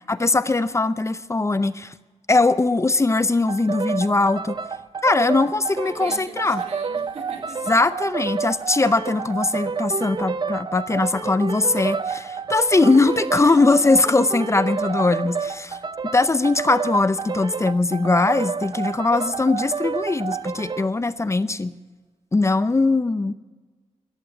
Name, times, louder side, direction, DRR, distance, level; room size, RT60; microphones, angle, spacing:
voice 1, 0.1-1.9 2.3-4.6 5.0-6.6 7.7-15.8 16.1-21.7 22.3-23.3, left 3 dB, 25° left, 14 dB, 0.6 m, -20 dB
sound 1, 3.5-20.9, right 5 dB, 40° right, 0.5 m, -29 dB
voice 2, 5.8-7.7 13.0-13.8, right 4 dB, 80° right, 2 dB, 2.9 m, -40 dB
14.0 x 11.5 x 7.9 m, 1.3 s
wide cardioid pair, 95°, 11 cm